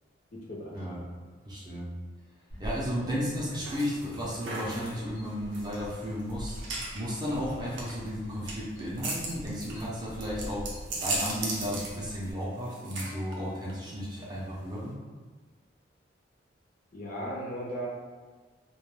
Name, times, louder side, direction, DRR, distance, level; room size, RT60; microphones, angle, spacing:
voice 1, 0.5-0.8 16.9-17.9, equal, 45° left, -4 dB, 0.5 m, -36 dB
voice 2, 1.4-1.9 2.6-6.6 6.9-10.6 10.9-15.0, equal, 20° right, -7 dB, 0.5 m, -34 dB
sound 1, 2.5-12.3, equal, 80° left, 0.9 m, -45 dB
sound 2, 3.6-14.9, right 2 dB, 75° right, 0.5 m, -38 dB
2.2 x 2.2 x 3.1 m, 1.4 s
head